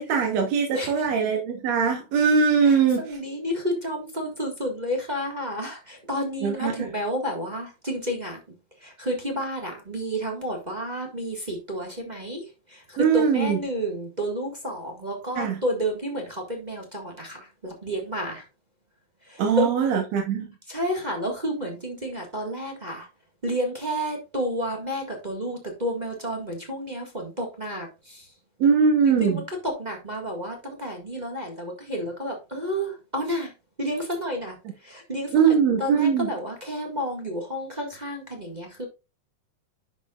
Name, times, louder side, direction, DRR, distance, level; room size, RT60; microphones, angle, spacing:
voice 1, 0.0-3.2 6.4-6.9 13.0-13.6 15.4-15.6 19.4-20.5 28.6-29.5 35.3-36.3, right 6 dB, 65° right, 2.3 m, -21 dB
voice 2, 0.7-1.1 2.6-8.4 8.8-12.4 12.7-18.4 19.3-19.7 20.7-23.1 23.4-28.2 29.2-33.5 33.8-34.5 34.8-38.9, equal, 20° right, 1.3 m, -31 dB
11.0 x 5.9 x 2.4 m
omnidirectional pair, 3.4 m